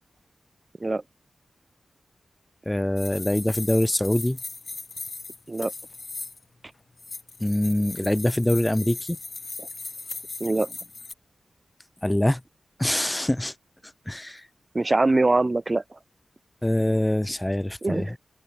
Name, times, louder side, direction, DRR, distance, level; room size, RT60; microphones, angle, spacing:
voice 1, 2.6-4.4 7.4-9.2 12.0-12.4 12.8-13.5 14.1-14.4 16.6-18.1, left 1 dB, 15° left, 1.4 m, -24 dB
sound 1, 3.0-6.4 7.0-11.1, left 3 dB, 45° left, 1.0 m, -38 dB
voice 2, 10.4-10.7 14.7-15.8 17.8-18.1, right 2 dB, 35° right, 1.6 m, -23 dB
cardioid pair, 50°, 0 cm